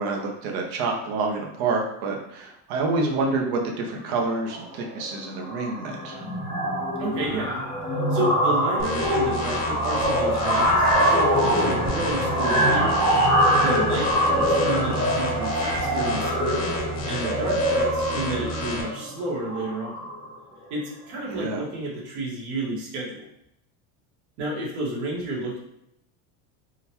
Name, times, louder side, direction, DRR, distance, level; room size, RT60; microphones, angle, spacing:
voice 1, 0.0-6.2 21.3-21.6, right 3 dB, 50° right, 1 dB, 0.7 m, -27 dB
sound 1, 4.4-4.6 4.9-5.1 5.4-20.3, equal, 10° left, 0.8 m, -24 dB
voice 2, 7.0-7.6 8.1-12.9 13.6-16.7 17.0-20.1 20.7-23.3 24.4-25.6, right 2 dB, 65° right, -4 dB, 1.4 m, -31 dB
sound 2, 8.8-18.8, equal, 35° left, 0.8 m, -32 dB
3.8 x 2.2 x 2.9 m, 0.78 s
cardioid pair, 150°, 47 cm